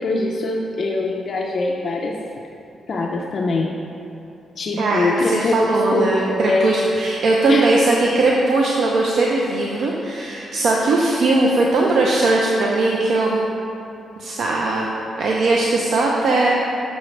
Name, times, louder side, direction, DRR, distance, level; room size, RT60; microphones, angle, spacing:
voice 1, 0.0-2.1 2.9-3.7 4.6-6.9 7.5-7.7, left 3 dB, 40° left, -2 dB, 0.4 m, -23 dB
voice 2, 4.8-13.4 14.2-16.5, right 2 dB, 55° right, -2 dB, 0.5 m, -19 dB
6.8 x 6.1 x 3.2 m, 2.8 s
wide cardioid pair, 175°, 0 cm